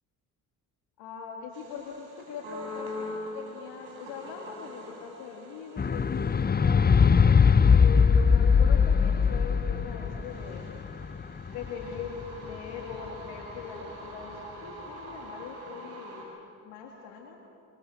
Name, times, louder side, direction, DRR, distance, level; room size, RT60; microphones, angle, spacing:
voice 1, 1.0-7.2 7.7-10.7 11.1-11.2 11.5-16.3 16.6-17.4, left 6 dB, 75° left, 0 dB, 2.3 m, -41 dB
sound 1, 1.5-16.2, left 1 dB, 75° right, 6.9 m, -45 dB
sound 2, 5.8-12.2 13.1-13.2, left 6 dB, 20° left, 0.7 m, -21 dB
27.0 x 22.5 x 6.4 m, 2.6 s
hypercardioid pair, 50°, 45 cm